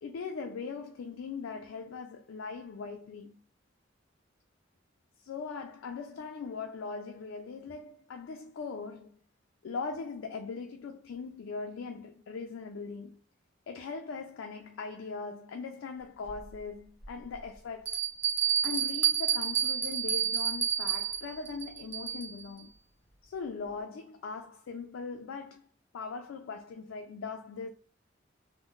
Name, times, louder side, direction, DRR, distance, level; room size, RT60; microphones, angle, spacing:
voice 1, 0.0-3.4 5.2-9.1 9.6-13.2 13.7-18.0 18.6-22.7 23.2-25.6 25.9-27.7, left 4 dB, 85° left, 0.4 m, -40 dB
Bell, 16.2-16.3 17.0-17.1 17.9-22.4, right 8 dB, 10° right, 0.7 m, -30 dB
3.6 x 2.0 x 2.4 m
head